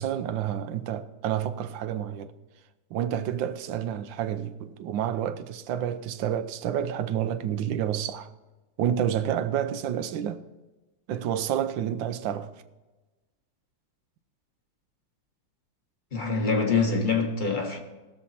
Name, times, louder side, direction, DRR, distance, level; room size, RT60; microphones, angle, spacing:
voice 1, 0.0-2.3 2.9-8.3 8.8-10.4 11.1-12.5, right 10 dB, 70° right, 1.3 m, -29 dB
voice 2, 16.1-17.8, left 4 dB, 25° left, 1.4 m, -25 dB
19.5 x 7.2 x 4.2 m
omnidirectional pair, 2.3 m